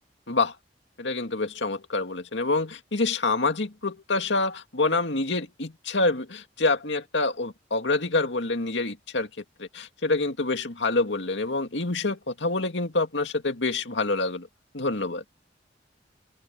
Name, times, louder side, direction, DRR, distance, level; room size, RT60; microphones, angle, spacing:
voice 1, 1.0-9.3 9.6-14.5 14.7-15.2, left 3 dB, 80° left, 2.3 m, -27 dB
head